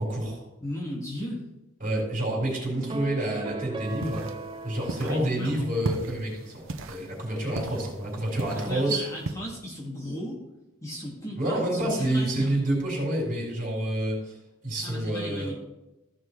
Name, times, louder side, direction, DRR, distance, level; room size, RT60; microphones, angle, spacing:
voice 1, 0.0-0.4 1.8-4.3 4.6-9.0 11.4-14.3 14.6-15.5, right 1 dB, 40° right, -2 dB, 4.3 m, -28 dB
voice 2, 0.6-1.4 5.0-5.7 8.6-10.4 10.8-12.5 14.8-15.5, equal, 15° left, -4 dB, 2.4 m, -35 dB
sound 1, 2.9-6.4, right 3 dB, 25° right, 0.6 m, -39 dB
sound 2, 3.9-9.3, right 2 dB, 65° right, 0.8 m, -37 dB
15.0 x 5.6 x 4.8 m, 0.97 s
head